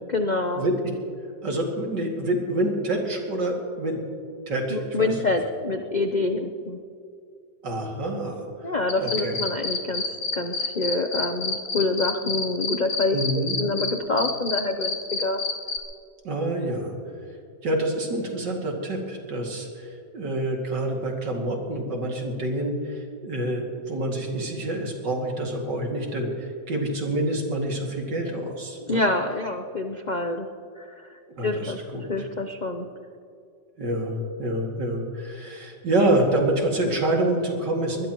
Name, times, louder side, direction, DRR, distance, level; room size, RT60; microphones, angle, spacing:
voice 1, 0.1-0.6 4.7-6.8 8.6-10.1 10.3-15.4 28.9-30.5 30.8-31.8 32.1-32.9, left 2 dB, 80° left, 5 dB, 0.4 m, -26 dB
voice 2, 1.4-4.0 4.5-5.2 7.6-8.5 9.0-9.4 13.1-13.6 16.2-16.9 17.6-29.0 31.3-32.0 33.8-38.1, right 1 dB, 70° right, 0 dB, 3.0 m, -27 dB
sound 1, 8.9-13.9 14.2-15.8, left 3 dB, 45° left, 1.7 m, -27 dB
22.5 x 20.5 x 3.0 m, 2.4 s
omnidirectional pair, 2.0 m